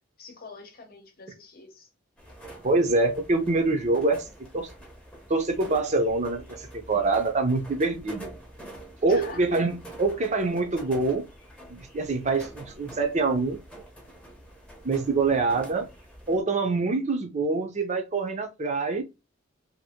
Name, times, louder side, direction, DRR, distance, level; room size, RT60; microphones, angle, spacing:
voice 1, 0.2-1.9 9.1-9.6, left 3 dB, 50° left, 0.8 m, -44 dB
sound 1, 2.2-16.4, right 1 dB, 5° left, 0.7 m, -46 dB
voice 2, 2.6-4.3 4.5-4.7 5.3-8.3 9.0-11.3 11.7-13.6 14.8-15.9 16.3-19.0, right 3 dB, 35° right, 0.6 m, -25 dB
2.7 x 2.6 x 2.8 m
head